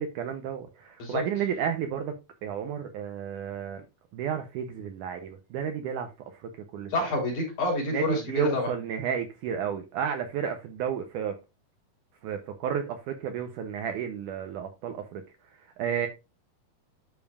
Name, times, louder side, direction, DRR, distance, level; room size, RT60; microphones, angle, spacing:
voice 1, 0.0-2.1 2.4-3.8 4.1-6.9 7.9-11.3 12.2-15.2 15.5-16.1, right 8 dB, 90° right, 1.8 m, -32 dB
voice 2, 6.9-8.7, left 2 dB, 55° left, 4.9 m, -28 dB
12.0 x 5.3 x 2.4 m
omnidirectional pair, 4.5 m